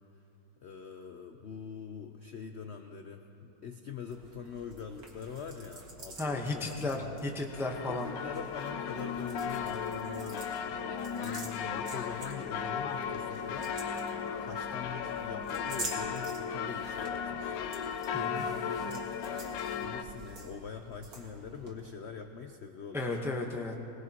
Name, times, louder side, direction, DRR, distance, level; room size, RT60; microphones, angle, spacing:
voice 1, 0.6-7.6 7.9-10.8 11.2-13.7 14.4-18.0 18.5-23.2, left 6 dB, 65° left, 5 dB, 0.6 m, -43 dB
sound 1, 4.1-21.7, right 2 dB, 55° right, 2.2 m, -48 dB
voice 2, 6.2-8.1 18.1-18.4 22.9-23.8, left 2 dB, ahead, 1 dB, 0.6 m, -34 dB
sound 2, 7.5-20.0, left 6 dB, 85° left, 1.4 m, -36 dB
21.0 x 19.5 x 3.0 m, 2.9 s
omnidirectional pair, 2.0 m